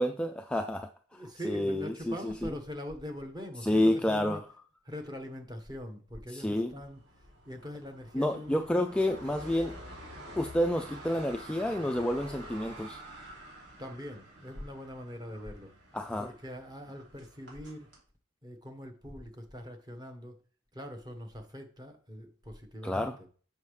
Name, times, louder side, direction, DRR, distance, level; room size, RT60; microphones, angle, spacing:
voice 1, 0.0-2.5 3.6-4.4 6.3-6.7 8.1-9.7 10.4-13.0 15.9-16.3 22.8-23.1, left 1 dB, 5° left, 0.3 m, -29 dB
voice 2, 1.1-4.4 4.8-8.9 13.8-15.7 16.2-17.9 18.4-20.4 20.7-23.3, equal, 20° right, 1.2 m, -42 dB
sound 1, 6.5-18.0, equal, 65° right, 3.0 m, -48 dB
6.9 x 5.6 x 3.2 m
head